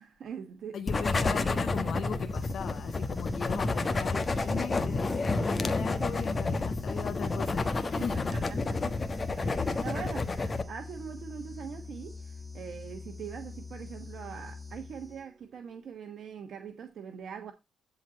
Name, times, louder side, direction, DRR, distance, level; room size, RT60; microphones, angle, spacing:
voice 1, 0.0-0.8 8.0-9.0 9.4-17.5, right 7 dB, 60° right, 1.3 m, -42 dB
voice 2, 0.7-8.3, left 7 dB, 60° left, 0.9 m, -38 dB
sound 1, 0.9-10.6, left 3 dB, 30° left, 1.2 m, -30 dB
sound 2, 2.3-15.5, left 4 dB, ahead, 1.5 m, -44 dB
11.0 x 4.2 x 5.0 m
cardioid pair, 90°, 0 cm